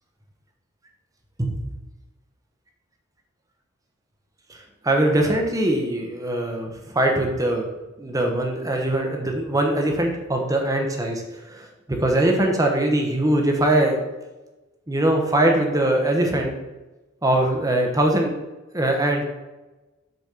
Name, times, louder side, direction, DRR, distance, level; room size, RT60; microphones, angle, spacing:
voice 1, 4.5-7.7 8.0-11.7 12.0-14.0 14.9-16.5 17.2-18.4 18.7-19.2, right 1 dB, 15° right, 2 dB, 0.8 m, -22 dB
6.6 x 4.0 x 4.8 m, 1.1 s
head